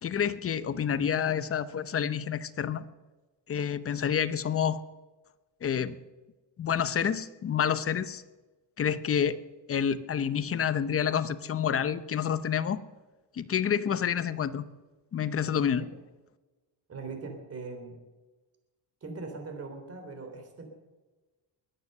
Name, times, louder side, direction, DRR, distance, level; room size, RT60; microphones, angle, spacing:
voice 1, 0.0-2.8 3.5-4.8 5.6-6.0 6.6-8.2 8.8-9.4 9.7-12.8 13.3-14.6 15.1-15.9, left 8 dB, 35° left, 14 dB, 0.8 m, -28 dB
voice 2, 16.9-18.0 19.0-20.6, right 3 dB, 35° right, 4 dB, 3.5 m, -40 dB
21.5 x 9.8 x 6.6 m, 1.2 s
cardioid pair, 135°, 42 cm